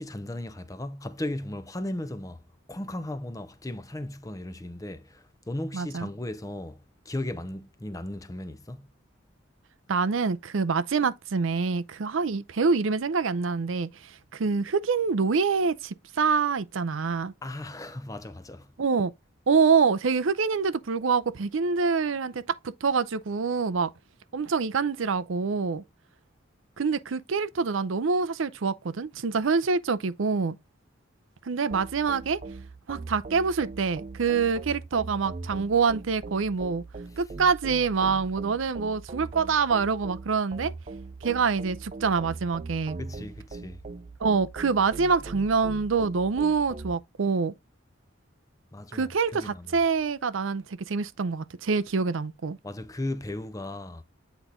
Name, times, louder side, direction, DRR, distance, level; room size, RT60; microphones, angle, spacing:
voice 1, 0.0-2.4 2.7-8.9 17.4-18.7 37.1-37.2 43.0-43.8 48.7-49.8 52.6-54.0, left 1 dB, 15° left, 0.6 m, -36 dB
voice 2, 5.7-6.1 9.9-17.3 18.8-19.1 19.5-23.9 24.3-25.8 26.8-30.6 31.5-32.4 32.9-36.8 37.2-40.7 41.2-43.0 44.2-47.5 48.9-52.6, right 5 dB, 80° right, 0.6 m, -26 dB
sound 1, 31.7-46.9, right 3 dB, 35° right, 0.4 m, -41 dB
8.1 x 4.1 x 3.6 m
head